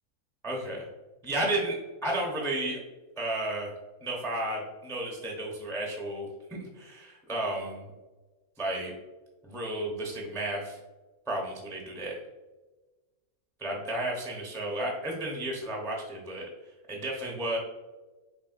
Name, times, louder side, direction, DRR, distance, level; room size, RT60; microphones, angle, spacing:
voice 1, 0.4-0.9 1.2-1.8 2.0-2.8 3.2-3.7 4.0-7.8 8.6-9.0 9.4-10.8 11.3-12.2 13.6-16.5 16.9-17.6, right 1 dB, 5° left, -1 dB, 0.4 m, -32 dB
5.4 x 3.0 x 2.5 m, 1.2 s
omnidirectional pair, 1.7 m